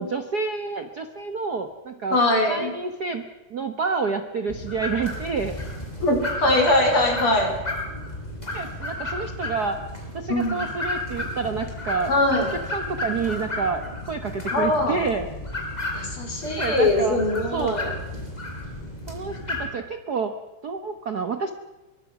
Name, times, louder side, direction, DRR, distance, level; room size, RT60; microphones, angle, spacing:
voice 1, 0.0-2.2 2.5-3.2 3.5-5.6 8.5-9.8 10.1-15.3 16.6-17.2 17.5-18.0 19.1-20.3 20.6-21.5, right 5 dB, 75° right, 8 dB, 0.9 m, -29 dB
voice 2, 2.1-2.7 6.0-7.5 10.3-10.7 12.1-12.5 14.5-15.0 15.9-17.9, left 1 dB, 40° left, 3 dB, 5.5 m, -22 dB
sound 1, 4.5-19.7, left 1 dB, 10° left, 5.2 m, -33 dB
23.5 x 22.5 x 6.0 m, 1.1 s
omnidirectional pair, 3.6 m